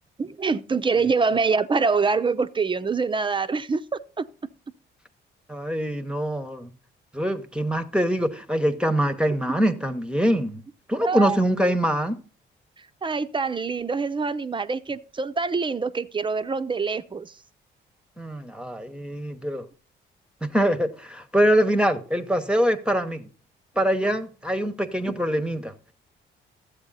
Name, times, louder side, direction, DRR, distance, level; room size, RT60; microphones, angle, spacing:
voice 1, 0.2-4.3 9.6-9.7 11.0-11.8 13.0-17.3 25.1-25.2, right 4 dB, 25° right, 0.6 m, -25 dB
voice 2, 5.5-6.7 7.1-10.6 10.9-12.2 18.2-19.7 20.4-23.3 23.8-25.7, equal, 5° right, 0.9 m, -24 dB
12.5 x 8.1 x 4.0 m
cardioid pair, 90°, 20 cm